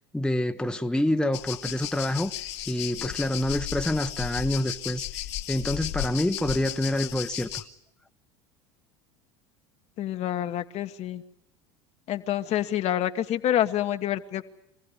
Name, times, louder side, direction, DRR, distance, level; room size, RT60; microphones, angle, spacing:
voice 1, 0.1-2.3 2.7-5.2 5.5-7.6, left 1 dB, 5° left, 1.1 m, -27 dB
sound 1, 1.3-7.6, left 13 dB, 70° left, 2.0 m, -35 dB
voice 2, 10.0-11.2 12.1-14.5, left 11 dB, 50° left, 1.4 m, -27 dB
25.5 x 16.0 x 9.7 m
hypercardioid pair, 85°, 15 cm